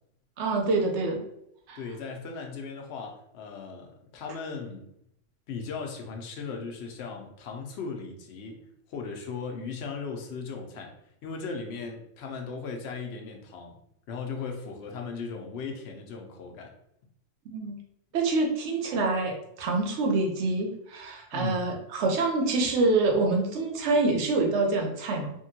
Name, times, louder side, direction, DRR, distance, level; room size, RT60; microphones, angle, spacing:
voice 1, 0.4-1.2 1.7-1.8 17.5-17.8 18.1-25.3, right 3 dB, 70° right, 2 dB, 0.9 m, -26 dB
voice 2, 1.7-4.9 5.5-10.9 11.2-13.8 14.1-16.7 21.3-21.7, left 5 dB, 65° left, 2 dB, 0.8 m, -37 dB
3.5 x 2.2 x 2.7 m, 0.77 s
omnidirectional pair, 1.2 m